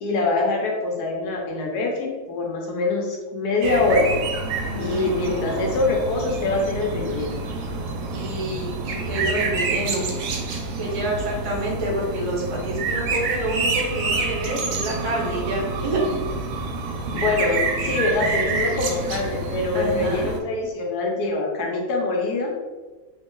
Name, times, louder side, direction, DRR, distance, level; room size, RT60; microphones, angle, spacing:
voice 1, 0.0-4.1 4.8-7.4 17.1-22.5, left 3 dB, 85° left, 0 dB, 1.3 m, -24 dB
sound 1, 3.6-20.4, right 3 dB, 70° right, 0.9 m, -28 dB
voice 2, 4.6-5.5 8.1-10.1 10.8-16.2 19.7-20.3, right 1 dB, 40° right, -3 dB, 0.4 m, -28 dB
2.9 x 2.4 x 3.7 m, 1.3 s
omnidirectional pair, 1.6 m